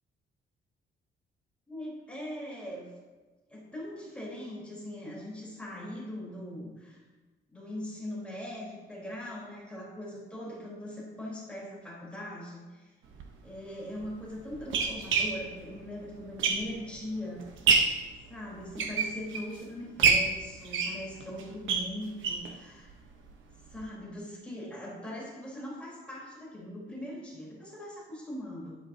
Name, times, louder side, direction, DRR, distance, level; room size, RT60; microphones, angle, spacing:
voice 1, 1.7-2.9 3.5-7.0 7.5-12.9 13.4-17.4 18.3-23.0 23.7-28.7, left 1 dB, 5° left, -6 dB, 3.9 m, -41 dB
sound 1, 13.1-13.2 14.0-17.0 17.4-18.1 18.6-19.6 20.0-22.5 22.9-23.0 23.3-23.4 23.7-23.8, right 5 dB, 70° right, 1.1 m, -28 dB
12.5 x 11.5 x 2.8 m, 1.3 s
cardioid pair, 150°, 20 cm